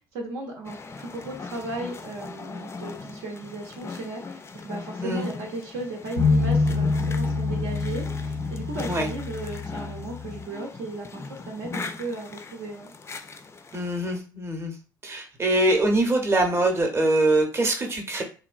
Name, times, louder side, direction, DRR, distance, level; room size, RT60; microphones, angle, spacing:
voice 1, 0.0-12.9, right 2 dB, 65° right, 1 dB, 0.7 m, -36 dB
sound 1, 0.6-14.2, left 4 dB, 25° left, 0.4 m, -39 dB
sound 2, 6.2-10.4, left 4 dB, 80° left, 0.6 m, -26 dB
voice 2, 13.7-14.7 15.0-18.2, right 1 dB, 25° right, 3 dB, 0.8 m, -23 dB
3.0 x 2.2 x 2.4 m, 0.37 s
hypercardioid pair, 55°, 10 cm